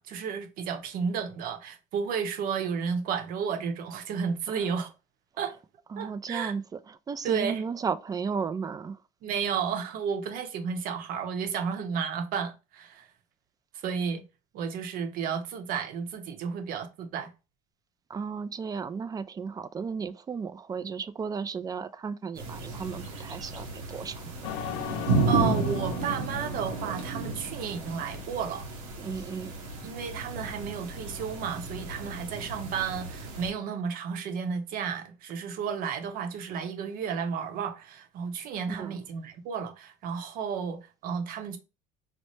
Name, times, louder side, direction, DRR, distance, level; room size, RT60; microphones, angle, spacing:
voice 1, 0.0-4.9 5.4-5.5 6.0-6.5 7.2-7.6 9.2-13.1 13.7-14.2 14.5-17.3 25.3-28.7 29.8-41.6, right 6 dB, 60° right, 0.8 m, -32 dB
voice 2, 5.9-9.0 18.1-24.2 29.0-29.6 38.7-38.9, right 5 dB, 20° right, 0.3 m, -34 dB
sound 1, 22.4-33.5, right 3 dB, 90° right, 1.0 m, -33 dB
sound 2, 24.4-27.8, left 10 dB, 80° left, 0.5 m, -39 dB
4.2 x 2.1 x 3.1 m
supercardioid pair, 95°, 17 cm